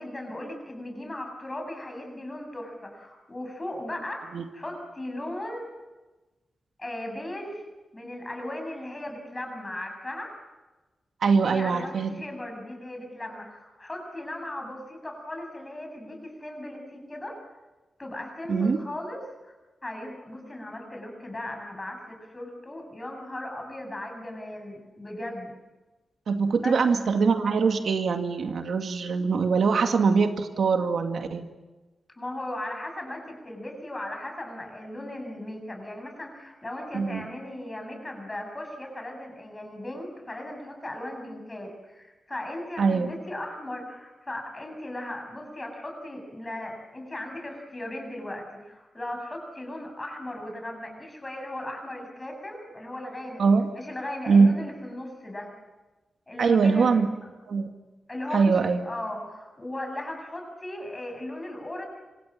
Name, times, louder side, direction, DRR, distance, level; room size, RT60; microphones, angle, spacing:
voice 1, 0.0-4.2 4.5-5.7 6.8-7.6 7.9-10.3 11.4-17.4 18.0-19.5 19.8-25.5 26.6-26.8 32.2-53.4 53.7-55.5 56.3-57.0 58.1-61.8, left 1 dB, 20° left, 3 dB, 7.4 m, -37 dB
voice 2, 11.2-12.1 18.5-18.8 26.3-31.5 36.9-37.2 42.8-43.1 53.4-53.7 54.3-54.5 56.4-57.1 57.5-57.7 58.3-58.8, right 5 dB, 75° right, 5 dB, 2.1 m, -22 dB
27.0 x 26.0 x 7.7 m, 1.2 s
wide cardioid pair, 150°, 0 cm